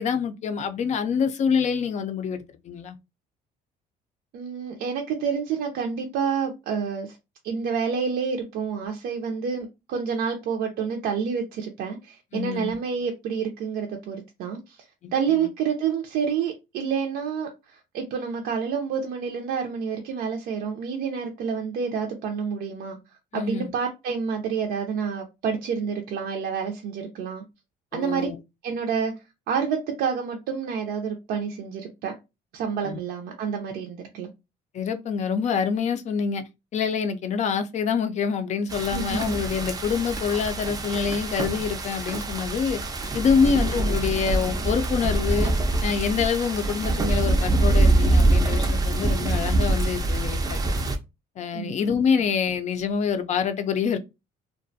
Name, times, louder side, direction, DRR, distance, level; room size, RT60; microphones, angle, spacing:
voice 1, 0.0-3.0 12.3-12.7 15.0-15.5 23.3-23.7 27.9-28.4 32.8-33.0 34.7-36.4 36.7-42.8 43.1-45.5 45.8-50.6 51.4-54.0, left 6 dB, 45° left, 0.4 m, -26 dB
voice 2, 4.3-7.2 7.4-14.9 15.1-23.0 23.3-27.4 27.9-28.3 28.6-29.1 29.5-32.1 32.5-34.3 38.9-39.2 43.4-43.6 51.5-51.9, right 6 dB, 75° right, 0.5 m, -28 dB
sound 1, 38.7-51.0, right 2 dB, 20° right, 0.4 m, -24 dB
2.3 x 2.1 x 2.6 m
cardioid pair, 110°, 17 cm